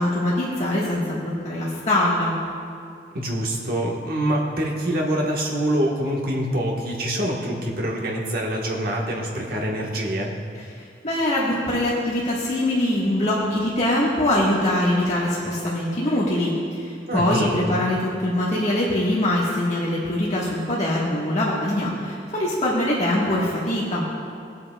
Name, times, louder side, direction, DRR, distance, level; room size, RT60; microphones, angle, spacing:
voice 1, 0.0-2.4 11.0-24.0, left 1 dB, 40° left, -7 dB, 1.6 m, -23 dB
voice 2, 3.1-10.3 17.1-17.5, right 1 dB, 60° right, -1 dB, 1.5 m, -25 dB
19.5 x 8.4 x 2.4 m, 2.4 s
head